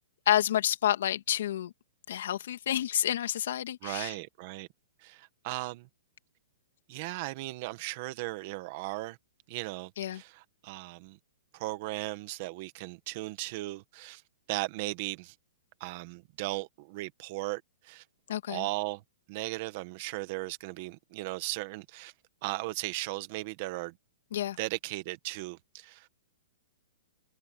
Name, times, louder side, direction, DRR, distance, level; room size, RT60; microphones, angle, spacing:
voice 1, 0.3-1.7 2.1-4.1 10.0-10.2 18.3-18.6 24.3-24.6, left 11 dB, 55° left, 2.5 m, -29 dB
voice 2, 3.8-4.7 5.0-5.9 6.9-9.2 9.5-11.2 11.5-14.2 14.5-15.3 15.8-18.0 18.5-19.0 19.3-22.1 22.4-24.0 24.6-26.1, right 20 dB, 30° right, 1.6 m, -37 dB
hypercardioid pair, 175°, 0 cm